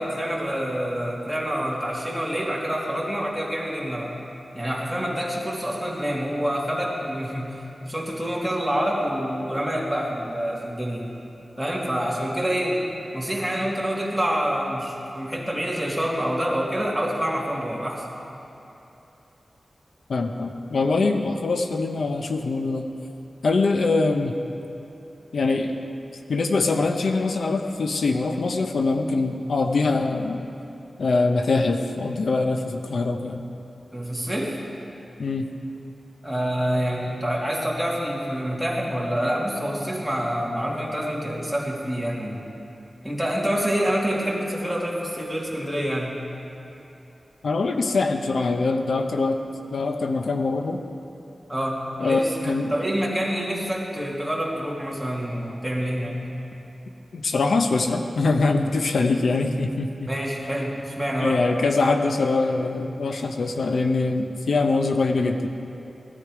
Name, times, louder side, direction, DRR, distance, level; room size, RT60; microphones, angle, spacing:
voice 1, 0.0-4.1 4.5-11.1 11.6-12.8 13.1-18.1 33.9-34.6 36.2-42.4 43.0-46.2 51.5-56.2 60.1-61.5, equal, ahead, -4 dB, 2.4 m, -27 dB
voice 2, 20.1-22.8 23.4-24.3 25.3-25.8 26.3-30.4 31.0-33.4 35.2-35.5 47.4-49.4 49.7-50.8 52.0-52.7 57.1-60.1 61.2-65.5, left 3 dB, 85° left, 5 dB, 0.7 m, -23 dB
17.5 x 12.5 x 4.8 m, 2.8 s
wide cardioid pair, 110°, 0 cm